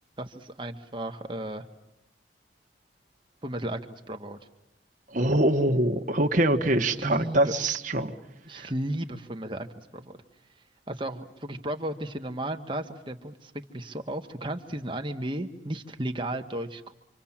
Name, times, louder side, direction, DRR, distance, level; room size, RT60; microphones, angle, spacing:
voice 1, 0.2-1.6 3.4-4.4 7.0-7.5 8.5-10.2 10.9-16.9, right 1 dB, 25° right, 5 dB, 1.5 m, -34 dB
voice 2, 5.1-8.1 8.5-8.7, right 1 dB, 45° right, 4 dB, 1.5 m, -24 dB
27.0 x 26.5 x 7.4 m, 0.84 s
head